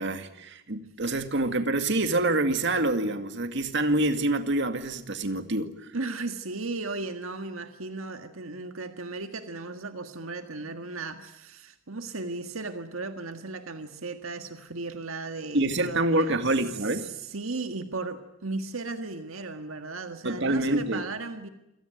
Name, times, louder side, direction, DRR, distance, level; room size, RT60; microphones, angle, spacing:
voice 1, 0.0-5.9 15.5-17.1 20.2-21.1, right 2 dB, 60° right, 2.1 m, -26 dB
voice 2, 5.9-16.4 17.0-21.5, right 3 dB, 80° right, 1.7 m, -35 dB
27.5 x 18.5 x 9.3 m
head